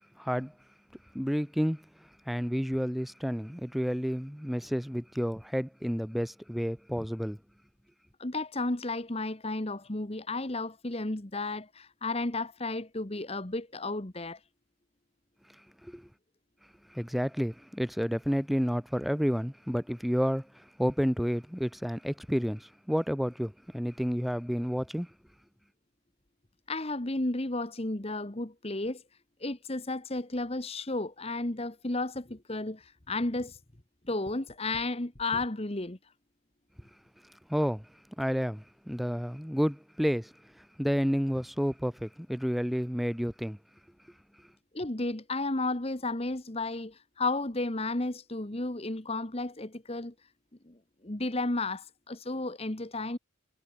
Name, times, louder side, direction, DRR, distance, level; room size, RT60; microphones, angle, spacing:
voice 1, 0.2-0.5 1.1-1.9 2.3-7.4 15.8-16.1 16.9-25.1 37.5-37.9 38.2-43.6, equal, ahead, 0.5 m, -30 dB
voice 2, 8.2-14.4 26.7-29.0 29.4-33.6 34.1-36.0 44.7-50.1 50.7-50.8 51.0-53.2, left 2 dB, 30° left, 1.3 m, -33 dB
head